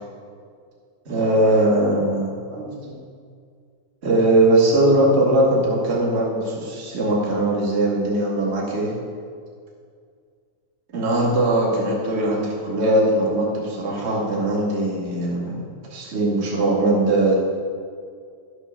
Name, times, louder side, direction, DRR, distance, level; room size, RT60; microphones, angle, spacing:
voice 1, 1.1-3.0 4.0-8.9 10.9-17.3, right 1 dB, 25° right, -3 dB, 1.9 m, -20 dB
13.0 x 6.2 x 6.7 m, 2.1 s
omnidirectional pair, 3.6 m